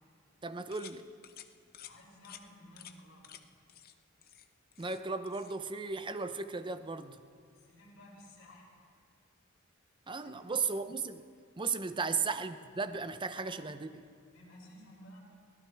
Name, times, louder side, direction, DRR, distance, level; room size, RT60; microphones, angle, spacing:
voice 1, 0.4-1.0 4.8-7.2 10.1-11.2 11.6-14.0, right 4 dB, 25° right, 11 dB, 0.6 m, -35 dB
sound 1, 0.7-1.0 1.2-1.5 1.7-1.9 2.2-2.4 2.8-2.9 3.2-3.4 3.7-3.9 4.2-5.0 5.3-5.5, left 11 dB, 50° left, 0.6 m, -51 dB
voice 2, 1.8-3.3 7.5-8.7 10.2-10.6 12.1-12.2 13.4-13.7 14.3-15.2, left 1 dB, 75° left, -5 dB, 5.5 m, -55 dB
23.5 x 16.5 x 3.4 m, 2.2 s
head